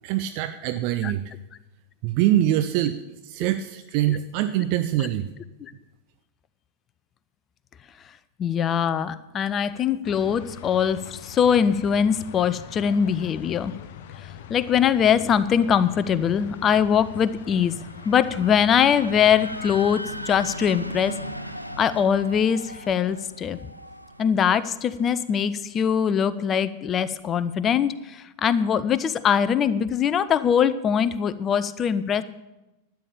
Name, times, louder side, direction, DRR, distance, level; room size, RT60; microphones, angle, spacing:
voice 1, 0.0-1.2 2.0-3.0 3.2-5.3, right 13 dB, 45° right, 10 dB, 0.5 m, -24 dB
voice 2, 8.4-13.7 14.5-17.7 18.0-21.1 21.8-23.6 24.2-32.2, left 8 dB, 25° left, 15 dB, 0.6 m, -22 dB
sound 1, 10.0-19.9, left 10 dB, 55° left, 0.8 m, -42 dB
sound 2, 16.2-26.0, equal, 90° left, 0.8 m, -39 dB
12.5 x 9.2 x 6.9 m, 1.0 s
figure-of-eight pair, 90°, 0 cm